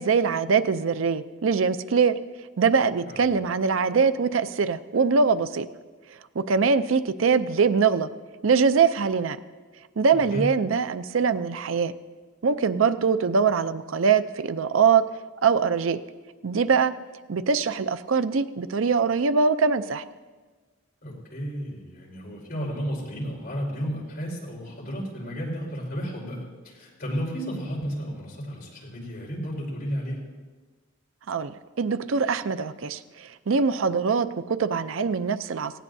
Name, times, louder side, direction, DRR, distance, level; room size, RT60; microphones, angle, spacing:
voice 1, 0.0-2.2 2.6-5.7 6.4-8.1 8.4-9.4 10.0-11.9 12.4-15.1 15.4-16.0 16.4-17.0 17.3-20.0 31.3-35.7, right 5 dB, 80° right, 12 dB, 0.5 m, -23 dB
voice 2, 3.1-3.4 10.1-10.5 21.0-30.2, equal, 50° left, -3 dB, 4.4 m, -33 dB
18.5 x 16.5 x 2.7 m, 1.4 s
head